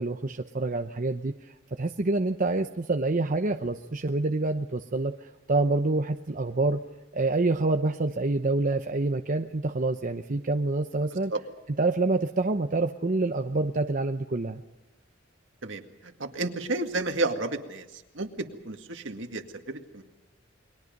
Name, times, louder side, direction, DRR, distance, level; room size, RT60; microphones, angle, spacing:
voice 1, 0.0-1.3 1.7-6.8 7.1-11.3 11.8-14.6, right 2 dB, 45° right, 6 dB, 0.8 m, -27 dB
voice 2, 15.6-20.0, right 2 dB, 70° right, 5 dB, 2.1 m, -32 dB
29.5 x 22.0 x 5.3 m, 1.0 s
head